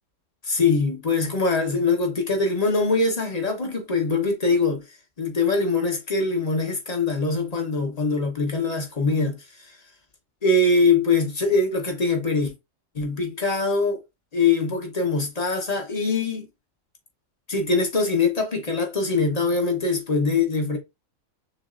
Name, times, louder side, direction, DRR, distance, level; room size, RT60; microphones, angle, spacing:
voice 1, 0.4-4.8 5.2-9.8 10.4-12.5 12.9-14.0 14.3-16.5 17.5-20.8, left 3 dB, 30° left, 1.1 m, -23 dB
6.5 x 2.7 x 2.5 m
omnidirectional pair, 1.4 m